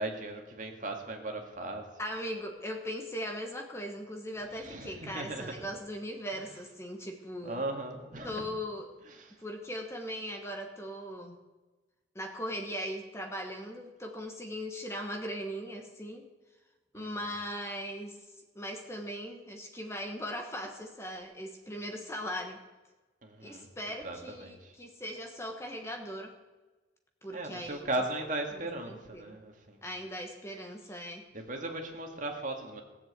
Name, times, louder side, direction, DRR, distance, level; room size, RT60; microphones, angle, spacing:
voice 1, 0.0-1.8 4.5-5.5 6.3-6.4 7.4-8.5 9.1-9.4 16.9-17.3 23.2-23.7 24.0-24.7 27.3-29.9 31.3-32.8, right 2 dB, 45° right, 3 dB, 2.0 m, -37 dB
voice 2, 2.0-7.6 8.2-8.9 9.4-11.4 12.1-16.3 16.9-18.2 18.5-22.6 23.4-26.3 27.2-27.9 28.9-29.4 29.8-31.2, equal, 15° left, 3 dB, 1.2 m, -39 dB
17.0 x 7.5 x 8.2 m, 1.2 s
head